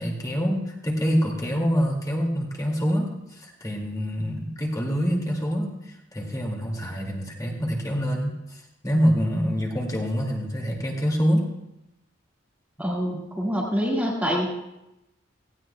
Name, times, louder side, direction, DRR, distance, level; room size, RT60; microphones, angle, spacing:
voice 1, 0.0-11.5, equal, 20° left, -1 dB, 2.1 m, -26 dB
voice 2, 12.8-14.5, equal, 10° right, -4 dB, 1.6 m, -26 dB
18.0 x 15.5 x 2.2 m, 0.90 s
head